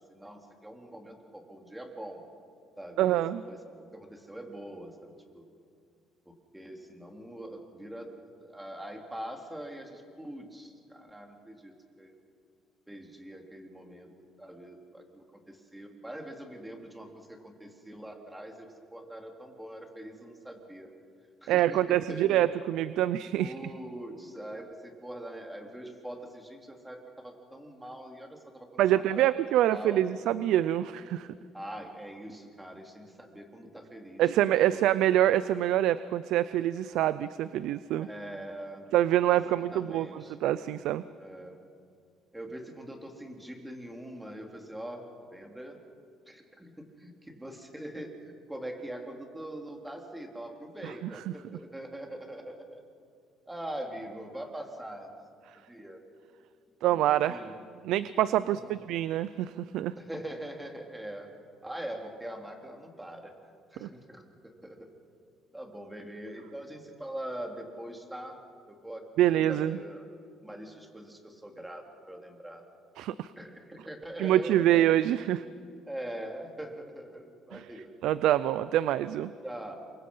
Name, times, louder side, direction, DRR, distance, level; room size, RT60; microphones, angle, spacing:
voice 1, 0.1-2.2 2.8-3.2 3.5-3.6 3.9-5.4 6.3-12.1 12.9-14.1 14.4-20.9 21.4-22.5 23.4-29.3 29.7-30.0 31.5-34.9 38.0-38.9 39.6-40.4 41.2-41.6 42.3-45.8 46.3-52.8 53.5-55.1 55.7-56.0 57.3-57.6 58.4-58.8 60.0-61.3 61.6-63.3 63.7-64.9 65.5-68.4 68.7-70.0 70.4-72.6 73.4-74.9 75.9-77.9 79.4-79.7, right 1 dB, 5° right, 2 dB, 3.5 m, -43 dB
voice 2, 3.0-3.4 21.5-23.5 28.8-31.3 34.2-38.1 38.9-41.0 50.8-51.3 56.8-57.4 57.8-59.9 63.8-63.9 69.2-69.8 73.0-73.3 74.2-75.4 77.5-77.6 78.0-79.3, right 12 dB, 75° right, 15 dB, 0.5 m, -26 dB
28.5 x 24.0 x 5.6 m, 2.4 s
cardioid pair, 110°, 0 cm